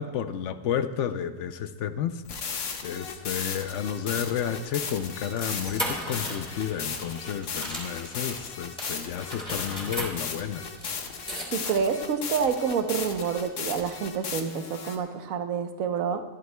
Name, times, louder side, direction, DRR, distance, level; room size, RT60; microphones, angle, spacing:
voice 1, 0.0-2.2 2.8-10.6, left 8 dB, 65° left, 11 dB, 0.7 m, -31 dB
sound 1, 2.2-15.0, left 6 dB, 85° left, 1.5 m, -36 dB
sound 2, 3.8-8.4 8.8-11.9, equal, 5° left, 2.7 m, -38 dB
voice 2, 11.5-16.2, right 6 dB, 60° right, 7 dB, 1.2 m, -28 dB
24.0 x 11.0 x 2.2 m, 1.3 s
omnidirectional pair, 1.7 m